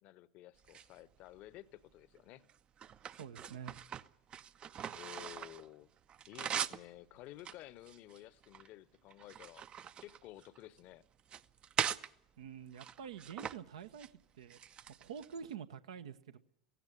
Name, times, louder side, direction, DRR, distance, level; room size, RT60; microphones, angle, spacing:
voice 1, 0.0-2.5 4.9-5.9 6.3-9.6 10.0-11.1, left 15 dB, 45° left, 0.9 m, -53 dB
sound 1, 0.6-1.6 2.2-5.7 6.0-6.9 7.4-8.7 9.1-10.8 11.2-12.1 12.7-13.6 13.8-14.1 14.5-15.5, right 9 dB, 30° right, 0.7 m, -42 dB
voice 2, 3.2-3.8 12.4-14.6 14.9-16.4, right 7 dB, 65° right, 1.0 m, -47 dB
16.5 x 16.5 x 9.6 m
figure-of-eight pair, 75°, 3 cm